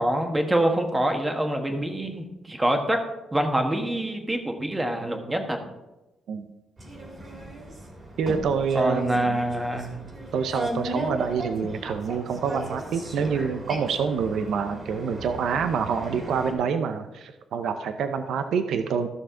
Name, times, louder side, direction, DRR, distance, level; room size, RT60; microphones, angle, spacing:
voice 1, 0.0-3.0 3.3-5.6 8.7-10.0, right 1 dB, 15° right, 5 dB, 1.3 m, -25 dB
sound 1, 6.8-16.5, right 1 dB, 35° right, 2.3 m, -36 dB
voice 2, 8.2-9.3 10.3-19.1, right 6 dB, 75° right, 9 dB, 0.6 m, -27 dB
13.5 x 6.4 x 3.8 m, 1.0 s
cardioid pair, 115°, 0 cm